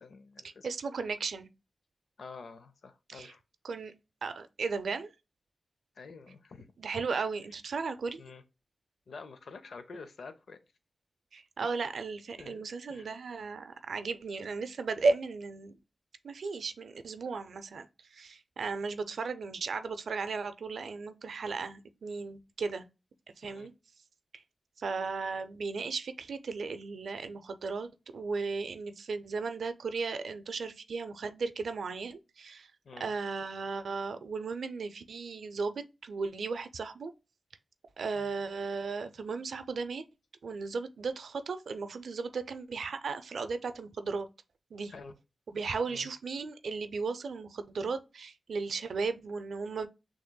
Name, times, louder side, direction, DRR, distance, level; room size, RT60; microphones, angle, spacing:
voice 1, 0.0-0.7 2.2-3.4 6.0-6.7 8.2-8.4 9.1-10.6 12.4-12.6 12.9-13.1 23.4-23.7 32.9-33.1 38.2-38.4 44.9-45.1 45.6-46.1, left 4 dB, 80° left, 0.6 m, -48 dB
voice 2, 0.6-1.5 3.1-3.3 3.6-3.9 4.2-5.1 6.8-8.2 11.3-15.8 16.2-17.9 18.1-22.9 23.4-23.7 24.3-24.4 24.8-32.7 33.0-37.1 38.0-40.0 40.4-44.3 44.7-44.9 45.5-49.9, right 4 dB, 85° right, 0.5 m, -35 dB
6.4 x 3.0 x 2.2 m
wide cardioid pair, 100°, 0 cm